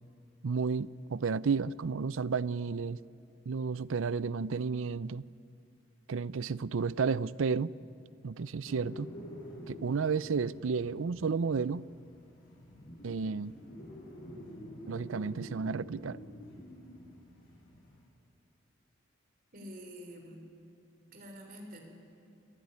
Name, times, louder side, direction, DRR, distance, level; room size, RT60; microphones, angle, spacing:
voice 1, 0.4-3.0 3.5-5.3 6.1-7.7 8.2-9.1 9.7-11.9 13.0-13.5 14.9-16.2, right 5 dB, 85° right, 18 dB, 0.5 m, -32 dB
sound 1, 8.6-18.0, equal, 45° left, 7.5 m, -48 dB
voice 2, 19.5-20.4 21.1-21.8, equal, 45° right, 2 dB, 4.1 m, -47 dB
28.0 x 16.0 x 9.7 m, 2.6 s
head